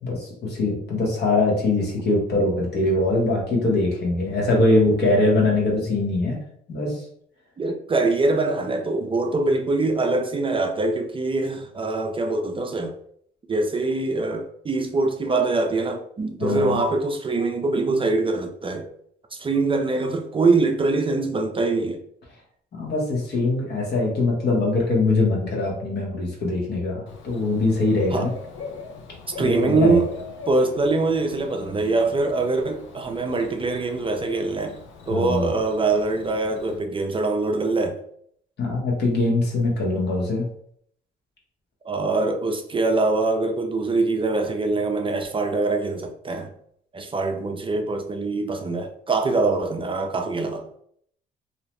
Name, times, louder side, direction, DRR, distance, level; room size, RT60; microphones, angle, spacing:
voice 1, 0.0-6.4 6.7-7.1 16.4-16.8 22.7-28.3 29.4-30.0 35.1-35.5 38.6-40.4, left 2 dB, 55° left, 0.9 m, -22 dB
voice 2, 7.6-12.9 13.5-18.9 19.3-22.0 28.1-28.3 29.4-30.1 30.5-34.8 35.1-38.0 41.8-46.5 46.9-50.6, right 3 dB, 25° right, 0.4 m, -23 dB
Bird / Cricket, 27.1-36.8, left 4 dB, 75° left, 0.6 m, -40 dB
2.7 x 2.1 x 3.0 m
cardioid pair, 90°, 20 cm